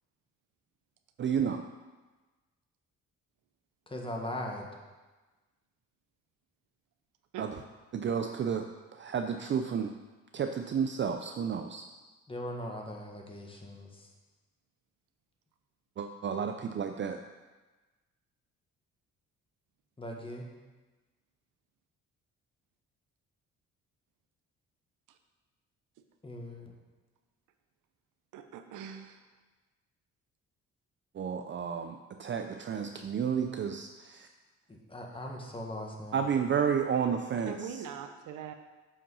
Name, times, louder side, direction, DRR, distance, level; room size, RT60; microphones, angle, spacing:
voice 1, 1.2-1.6 7.4-7.6 7.9-8.7 8.9-9.9 10.3-11.8 16.0-17.2 31.1-34.3 36.1-37.7, right 7 dB, 40° right, 6 dB, 0.5 m, -31 dB
voice 2, 3.9-4.7 12.3-14.1 20.0-20.5 26.2-26.7 34.7-36.2, left 1 dB, 15° left, 0 dB, 1.6 m, -40 dB
voice 3, 28.3-29.2 37.5-38.5, right 8 dB, 90° right, 7 dB, 0.8 m, -42 dB
7.3 x 5.8 x 5.5 m, 1.2 s
cardioid pair, 90°, 30 cm